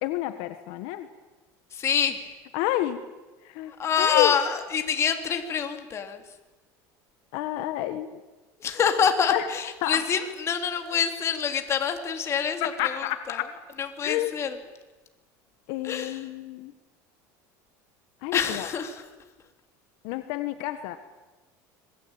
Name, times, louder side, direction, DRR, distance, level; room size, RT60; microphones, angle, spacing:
voice 1, 0.0-1.1 2.5-3.0 3.4-3.7 4.0-4.3 7.3-8.2 9.3-9.4 9.8-10.0 12.6-13.5 14.0-14.3 15.7-16.7 18.2-18.7 20.0-21.0, left 15 dB, 70° left, 10 dB, 1.7 m, -29 dB
voice 2, 1.7-2.2 3.7-6.2 8.6-13.4 13.8-14.6 15.8-16.2 18.3-19.0, left 7 dB, 30° left, 6 dB, 3.3 m, -26 dB
26.0 x 21.0 x 9.0 m, 1.2 s
cardioid pair, 140°, 9 cm